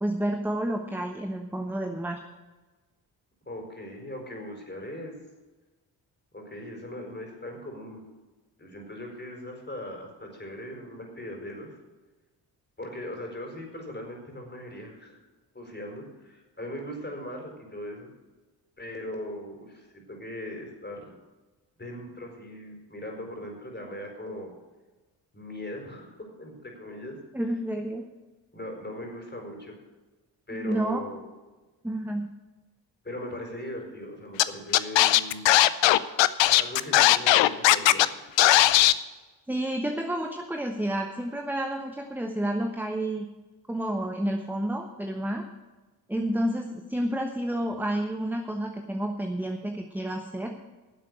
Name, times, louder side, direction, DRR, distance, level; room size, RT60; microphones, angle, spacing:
voice 1, 0.0-2.2 27.3-28.0 30.5-31.0 31.8-32.3 39.5-43.3 43.7-45.4 46.1-50.6, right 1 dB, 5° right, 4 dB, 1.2 m, -30 dB
voice 2, 3.5-5.2 6.3-8.0 8.6-11.7 12.8-15.2 15.5-18.1 18.8-21.1 21.8-24.5 25.3-27.2 28.5-29.8 30.5-31.3 33.0-35.4 36.4-38.3, left 1 dB, 20° left, 2 dB, 4.5 m, -39 dB
Scratching (performance technique), 34.4-34.5 34.7-38.1 38.4-38.9, left 15 dB, 65° left, 0.7 m, -18 dB
11.5 x 7.5 x 7.8 m, 1.2 s
hypercardioid pair, 40°, 49 cm